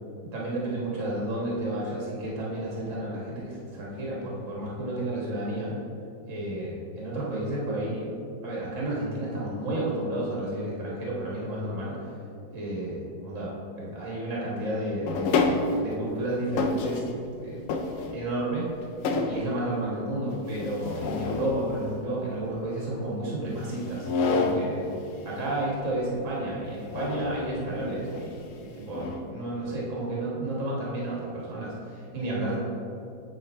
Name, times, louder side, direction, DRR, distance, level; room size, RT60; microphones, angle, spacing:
voice 1, 0.3-5.7 6.3-8.1 8.4-12.0 12.5-17.0 17.4-17.6 18.1-18.7 19.2-24.9 25.2-32.6, right 1 dB, 45° right, -5 dB, 1.7 m, -31 dB
sound 1, 15.1-16.0 16.5-17.3 17.7-18.4 18.8-19.5 20.6-21.5 23.9-24.7 26.9-27.6 28.1-28.3 28.9-29.3, left 4 dB, 75° left, 0.7 m, -28 dB
8.5 x 3.8 x 4.2 m, 2.6 s
omnidirectional pair, 1.9 m